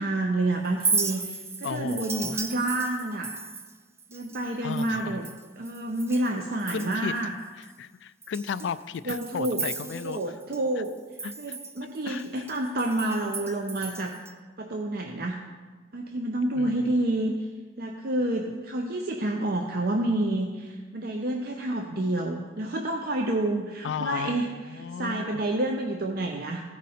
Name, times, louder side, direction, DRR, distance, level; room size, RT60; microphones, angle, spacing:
voice 1, 0.0-3.3 4.1-5.3 5.6-7.3 9.1-9.6 9.9-10.9 11.4-14.1 14.6-15.4 15.9-17.3 17.8-24.5 25.0-26.6, right 1 dB, 55° right, 2 dB, 0.6 m, -29 dB
Chink clink, 0.7-6.3 6.6-7.2 7.6-7.7 8.2-10.6 10.8-14.3, right 4 dB, 15° right, 0.4 m, -35 dB
voice 2, 1.6-2.4 4.6-5.2 6.7-10.2 10.8-10.9 11.2-11.6 12.0-12.4 16.6-16.9 23.8-25.4, left 6 dB, 80° left, 15 dB, 0.3 m, -35 dB
15.0 x 5.1 x 4.2 m, 1.3 s
head